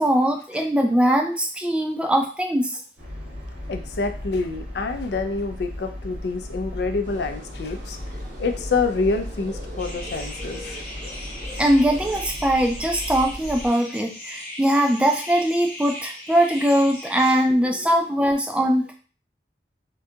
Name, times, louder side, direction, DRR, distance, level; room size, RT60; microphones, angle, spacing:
voice 1, 0.0-2.8 11.6-18.9, right 1 dB, 5° right, 2 dB, 0.3 m, -21 dB
sound 1, 3.0-13.7, left 1 dB, 80° right, 1.7 m, -36 dB
voice 2, 3.7-8.0 8.4-10.8, left 4 dB, 70° left, 7 dB, 0.4 m, -27 dB
sound 2, 7.0-12.2, right 1 dB, 45° right, 0.7 m, -42 dB
sound 3, 9.8-17.4, left 1 dB, 10° left, 0.8 m, -38 dB
3.7 x 2.3 x 2.7 m, 0.38 s
head